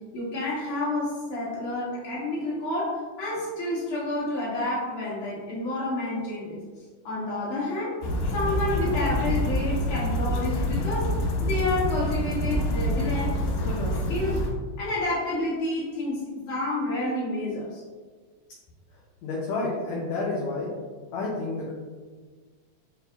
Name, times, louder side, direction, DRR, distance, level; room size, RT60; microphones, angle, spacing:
voice 1, 0.1-6.6 7.0-8.0 8.3-11.1 11.4-14.5 14.8-17.8, left 2 dB, 45° left, -8 dB, 2.1 m, -29 dB
sound 1, 8.0-14.5, left 1 dB, 90° left, 2.5 m, -27 dB
voice 2, 19.2-20.7 21.1-21.7, left 3 dB, 75° left, -4 dB, 1.8 m, -29 dB
5.9 x 2.6 x 3.4 m, 1.5 s
omnidirectional pair, 3.7 m